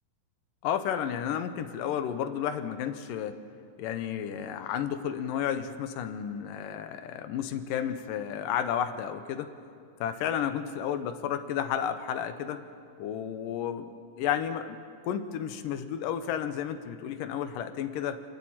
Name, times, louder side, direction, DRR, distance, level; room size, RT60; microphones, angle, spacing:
voice 1, 0.6-3.4 3.8-9.5 10.0-12.6 13.0-13.9 14.2-14.8 15.0-18.2, left 9 dB, 90° left, 10 dB, 2.6 m, -32 dB
26.0 x 12.5 x 8.8 m, 2.4 s
omnidirectional pair, 3.7 m